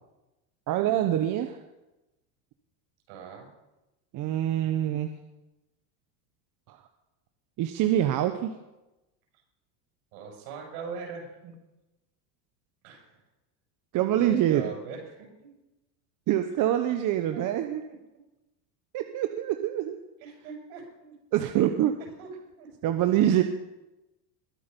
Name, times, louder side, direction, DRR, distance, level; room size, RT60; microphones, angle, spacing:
voice 1, 0.7-1.6 4.1-5.1 6.7-6.8 7.6-8.5 13.9-14.6 16.3-17.8 18.9-20.0 21.3-21.9 22.8-23.4, right 12 dB, 40° right, 7 dB, 1.0 m, -25 dB
voice 2, 3.1-3.5 10.1-11.5 12.8-13.2 14.1-15.6 17.3-18.0 20.2-21.2 21.6-22.3 22.6-22.7, right 5 dB, 65° right, 1 dB, 6.6 m, -42 dB
21.5 x 8.7 x 5.3 m, 0.99 s
supercardioid pair, 125°, 48 cm